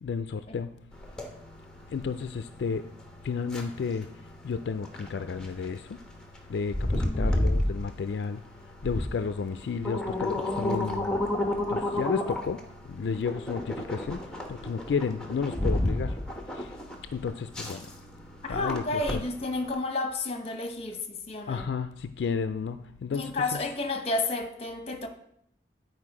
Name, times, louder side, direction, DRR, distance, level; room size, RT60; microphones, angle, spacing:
voice 1, 0.0-0.7 1.9-2.8 3.2-4.1 4.4-6.0 6.5-8.4 8.8-11.1 11.4-14.2 14.5-16.2 16.5-16.7 17.1-17.9 18.5-18.8 19.1-19.2 21.5-23.3, left 5 dB, 70° left, 10 dB, 0.3 m, -32 dB
sound 1, 0.9-19.7, left 1 dB, 5° left, 0.9 m, -32 dB
voice 2, 6.9-7.5 13.0-13.2 18.4-21.7 23.1-25.1, left 2 dB, 35° left, 6 dB, 0.9 m, -32 dB
9.4 x 4.6 x 4.8 m, 0.76 s
head